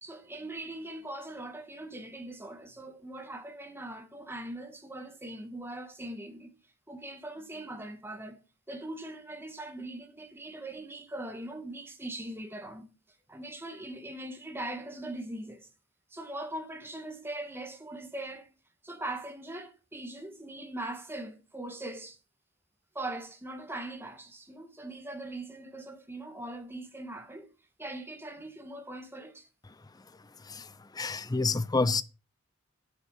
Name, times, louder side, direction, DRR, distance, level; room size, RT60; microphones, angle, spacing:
voice 1, 0.0-6.5 6.9-8.4 8.7-12.8 13.3-15.7 16.1-18.5 18.8-22.2 22.9-27.5 27.8-29.5, right 1 dB, 10° right, 1.5 m, -41 dB
voice 2, 30.4-32.0, left 3 dB, 20° left, 0.5 m, -29 dB
8.8 x 7.6 x 5.6 m
head